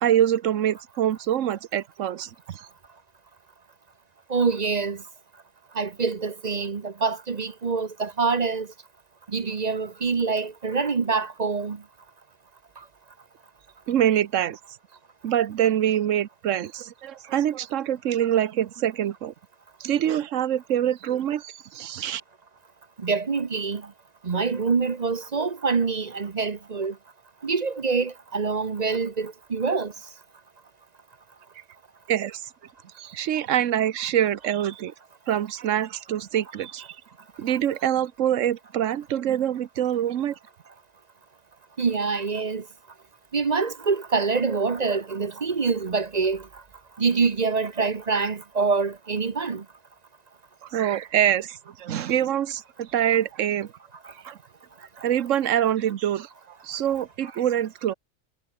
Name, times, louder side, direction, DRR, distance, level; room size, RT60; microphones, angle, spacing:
voice 1, 0.0-2.6 13.9-14.6 15.2-19.3 19.8-22.2 32.1-32.4 33.0-34.9 35.3-36.9 37.4-40.3 50.7-53.7 54.3-54.4 55.0-56.3 56.6-57.9, right 10 dB, 85° right, 1.2 m, -25 dB
voice 2, 4.3-5.0 5.7-8.7 9.3-11.8 12.8-12.9 23.0-23.9 24.2-27.0 27.4-29.9 37.5-37.6 41.8-42.7 43.3-46.6 47.0-49.6 54.0-54.1, right 4 dB, 35° right, 0.9 m, -25 dB
omnidirectional pair, 1.3 m